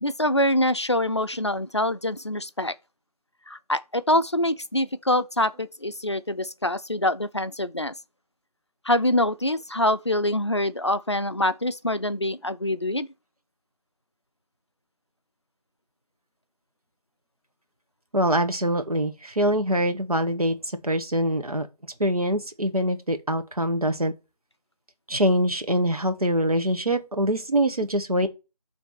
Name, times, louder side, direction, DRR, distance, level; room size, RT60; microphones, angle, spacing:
voice 1, 0.0-2.7 3.5-7.9 8.8-13.1, left 1 dB, 45° left, 0.5 m, -25 dB
voice 2, 18.1-20.6 20.8-21.7 22.0-24.1 25.1-28.3, right 1 dB, 65° right, 1.4 m, -24 dB
6.9 x 3.4 x 5.9 m
figure-of-eight pair, 170°, 21 cm